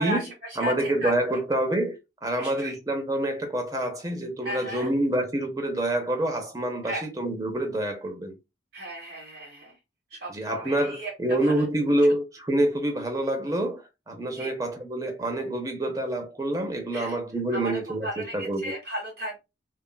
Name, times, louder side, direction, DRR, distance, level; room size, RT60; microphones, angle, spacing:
voice 1, 0.0-1.1 2.4-2.8 4.4-4.9 6.8-7.1 8.7-9.8 10.1-11.1 11.4-11.6 14.4-14.5 16.9-17.2 17.5-17.7 18.0-19.4, right 1 dB, 55° right, 0.8 m, -35 dB
voice 2, 0.6-8.4 10.3-18.7, right 1 dB, 15° right, 0.5 m, -27 dB
2.8 x 2.3 x 2.2 m
head